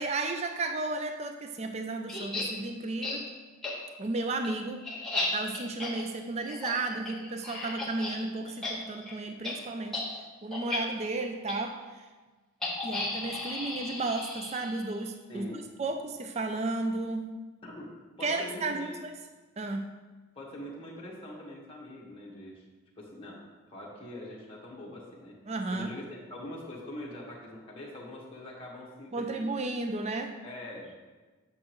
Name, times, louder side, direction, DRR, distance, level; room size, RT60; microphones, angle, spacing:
voice 1, 0.0-3.3 4.0-4.8 5.3-10.0 10.4-12.1 12.8-15.5 15.8-17.3 18.2-19.1 19.6-19.9 25.5-25.9 29.1-30.4, right 3 dB, 30° right, 6 dB, 0.3 m, -33 dB
sound 1, 2.1-2.5 3.0-3.2 3.6-3.7 4.1-8.2 8.5-8.7 9.0-9.1 9.4-9.5 9.9-10.1 10.5-10.8 11.5-11.6 12.6-15.0, left 2 dB, 5° left, 1.2 m, -35 dB
voice 2, 15.3-15.7 17.6-17.9 18.2-18.9 20.3-22.6 23.0-25.3 25.7-29.3 30.4-30.9, left 1 dB, 25° left, -5 dB, 1.4 m, -43 dB
8.6 x 6.1 x 3.0 m, 1.3 s
head